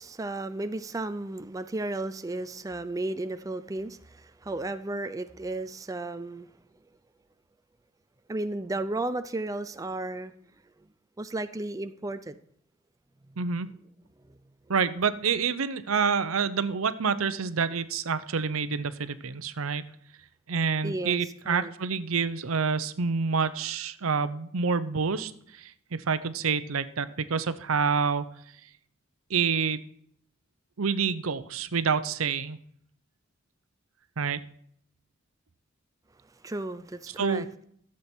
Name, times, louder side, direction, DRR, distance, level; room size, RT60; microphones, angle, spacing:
voice 1, 0.0-6.5 8.3-10.3 11.2-12.4 14.3-14.4 20.8-21.7 36.4-37.5, right 2 dB, 15° right, 10 dB, 0.4 m, -34 dB
voice 2, 13.4-13.7 14.7-19.8 20.5-28.3 29.3-29.8 30.8-32.6 34.2-34.4 37.2-37.5, right 5 dB, 80° right, 13 dB, 0.7 m, -27 dB
13.0 x 7.7 x 4.4 m, 0.66 s
head